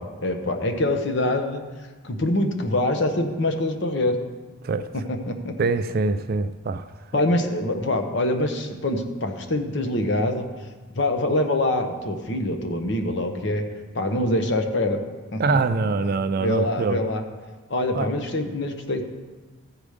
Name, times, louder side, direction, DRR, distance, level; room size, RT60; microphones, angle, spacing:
voice 1, 0.0-1.6 2.0-4.2 4.9-5.7 7.1-10.5 10.9-13.6 13.9-15.0 15.3-15.4 16.4-17.2 17.7-19.0, left 1 dB, 55° left, 0.9 m, -24 dB
voice 2, 5.6-6.9 7.1-7.2 15.4-17.0 17.9-18.1, right 4 dB, 45° right, 0.3 m, -24 dB
14.5 x 4.9 x 5.0 m
head